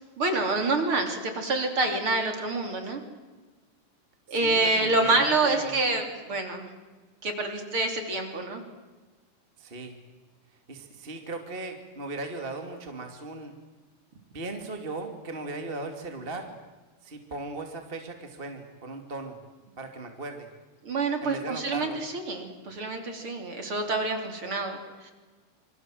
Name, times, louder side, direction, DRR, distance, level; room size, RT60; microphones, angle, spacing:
voice 1, 0.2-3.0 4.3-6.7 7.2-8.6 20.9-25.1, right 2 dB, 35° right, 5 dB, 3.8 m, -27 dB
voice 2, 4.3-6.0 9.6-10.0 10.7-13.5 14.3-16.5 17.0-19.4 19.8-20.5 21.2-22.0, right 2 dB, 20° right, 4 dB, 1.8 m, -38 dB
27.5 x 25.5 x 7.7 m, 1.3 s
omnidirectional pair, 4.5 m